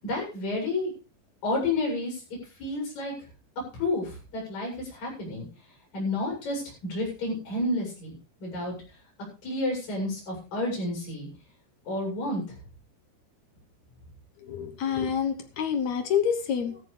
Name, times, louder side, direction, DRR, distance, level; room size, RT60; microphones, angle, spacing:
voice 1, 0.0-0.9 1.4-2.2 2.6-3.1 3.7-5.5 5.9-8.2 8.4-8.7 9.4-11.3 11.9-12.4, left 2 dB, 55° left, -1 dB, 9.4 m, -30 dB
voice 2, 14.4-16.8, left 7 dB, 70° left, 7 dB, 1.7 m, -27 dB
15.5 x 14.0 x 3.4 m, 0.33 s
omnidirectional pair, 4.9 m